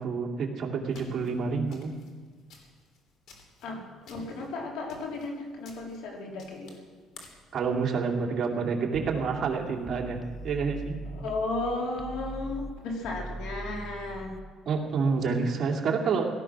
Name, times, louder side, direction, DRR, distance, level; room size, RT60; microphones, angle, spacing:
voice 1, 0.0-1.9 7.5-11.0 14.7-16.3, right 5 dB, 45° right, 0 dB, 2.6 m, -28 dB
sound 1, 0.9-7.5, left 4 dB, 65° left, 3.4 m, -54 dB
voice 2, 3.6-6.8 11.1-14.4 15.5-15.8, left 2 dB, 80° left, 0 dB, 3.7 m, -34 dB
sound 2, 8.9-11.7 12.0-14.4, right 1 dB, 5° right, 0.7 m, -41 dB
17.5 x 13.0 x 6.1 m, 1.5 s
cardioid pair, 125°, 0 cm